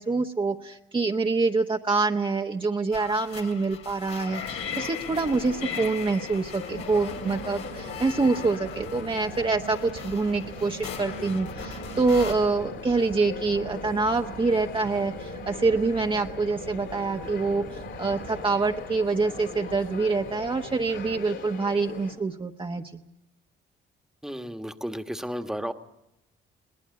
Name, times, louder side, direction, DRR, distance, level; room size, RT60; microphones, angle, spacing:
voice 1, 0.0-22.8, right 3 dB, 25° right, 2 dB, 1.1 m, -26 dB
sound 1, 2.9-12.3, left 7 dB, 90° left, 3.3 m, -39 dB
sound 2, 4.5-22.1, left 6 dB, 70° left, 3.9 m, -41 dB
sound 3, 6.7-21.2, right 6 dB, 80° right, 5.9 m, -43 dB
voice 2, 24.2-25.7, equal, ahead, 8 dB, 1.5 m, -33 dB
21.5 x 18.5 x 9.6 m, 0.86 s
cardioid pair, 90°, 20 cm